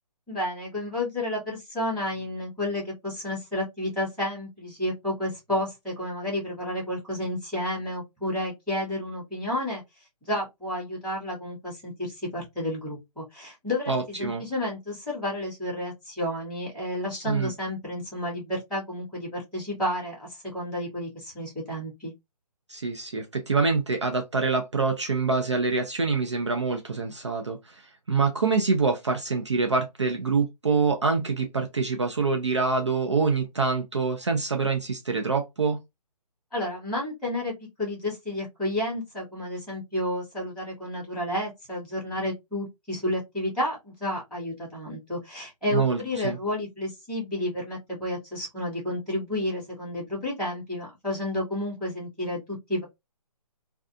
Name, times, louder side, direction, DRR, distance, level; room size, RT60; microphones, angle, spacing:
voice 1, 0.3-9.8 10.2-22.1 36.5-37.5 37.8-52.8, left 1 dB, ahead, 0.7 m, -31 dB
voice 2, 13.9-14.4 17.3-17.5 22.7-27.8 28.1-35.8 45.7-46.4, right 4 dB, 45° right, 0.4 m, -25 dB
2.5 x 2.3 x 2.3 m
hypercardioid pair, 180°, 21 cm